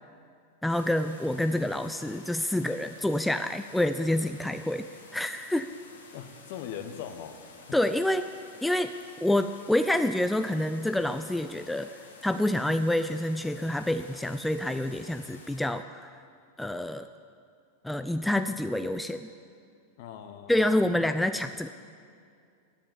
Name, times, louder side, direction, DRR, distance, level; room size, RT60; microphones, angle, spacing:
voice 1, 0.6-4.9 5.1-5.7 7.7-8.3 8.6-8.9 9.2-16.1 16.6-17.1 17.8-19.3 20.5-21.7, left 1 dB, 5° left, 9 dB, 0.3 m, -27 dB
sound 1, 0.7-15.6, left 4 dB, 70° left, 1.4 m, -51 dB
voice 2, 6.1-7.4 20.0-20.9, left 9 dB, 50° left, 8 dB, 0.9 m, -40 dB
9.9 x 7.1 x 8.9 m, 2.3 s
figure-of-eight pair, 90°, 0 cm